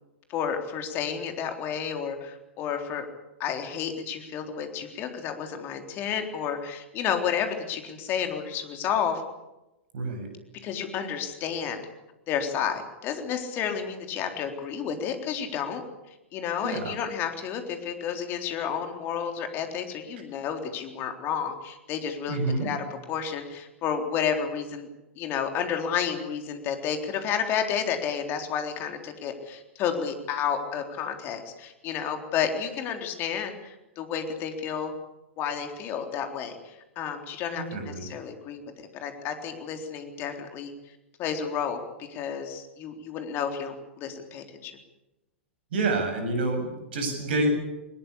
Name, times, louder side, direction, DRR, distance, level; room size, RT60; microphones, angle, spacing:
voice 1, 0.3-3.1 3.4-9.2 10.6-11.8 12.3-15.8 16.3-24.9 25.2-34.9 35.4-40.7 41.2-44.8, left 7 dB, 35° left, 5 dB, 3.8 m, -31 dB
voice 2, 9.9-10.3 16.6-16.9 22.3-22.7 37.6-38.1 45.7-47.5, right 2 dB, 60° right, 7 dB, 7.5 m, -28 dB
21.5 x 20.5 x 8.5 m, 0.99 s
figure-of-eight pair, 100°, 6 cm